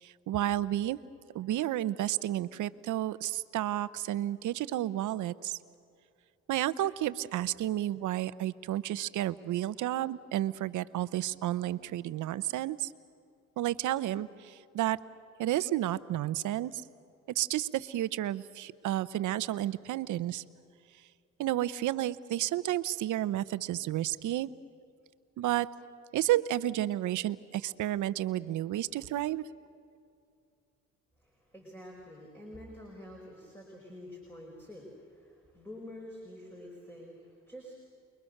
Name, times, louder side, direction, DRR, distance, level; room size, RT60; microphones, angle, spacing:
voice 1, 0.0-1.0 1.3-5.6 6.5-12.9 13.6-15.0 15.4-16.8 17.3-20.4 21.4-24.5 25.4-25.7 26.1-29.5, right 13 dB, 80° right, 16 dB, 0.8 m, -31 dB
voice 2, 31.2-37.7, left 1 dB, 5° left, -1 dB, 5.6 m, -48 dB
29.0 x 22.5 x 6.6 m, 2.5 s
cardioid pair, 90°, 30 cm